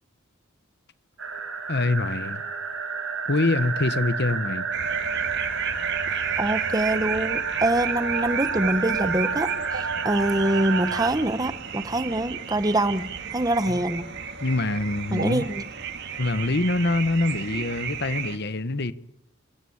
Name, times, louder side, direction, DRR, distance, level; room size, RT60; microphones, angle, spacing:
sound 1, 1.2-11.1, right 5 dB, 75° right, 4.9 m, -29 dB
voice 1, 1.7-2.4 3.3-4.7 14.4-15.4 16.2-18.9, left 2 dB, 55° left, 1.2 m, -25 dB
sound 2, 4.7-18.4, right 8 dB, 55° right, 2.1 m, -33 dB
voice 2, 6.4-14.1 15.1-15.6, right 1 dB, 20° right, 1.1 m, -25 dB
29.5 x 17.0 x 8.7 m
head